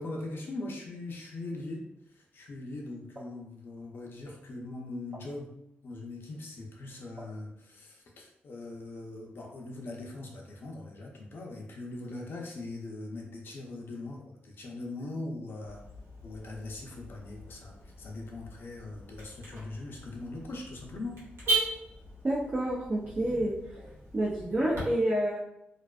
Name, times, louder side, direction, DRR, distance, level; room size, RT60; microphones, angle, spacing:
voice 1, 0.0-5.5 5.8-15.8 16.2-21.2 23.2-23.3, left 2 dB, 65° left, 0 dB, 0.5 m, -41 dB
Car / Alarm, 15.6-24.8, right 3 dB, 80° right, 1.1 m, -38 dB
voice 2, 22.2-25.4, right 1 dB, 35° right, -6 dB, 0.4 m, -29 dB
2.4 x 2.2 x 2.2 m, 0.79 s
wide cardioid pair, 130°, 4 cm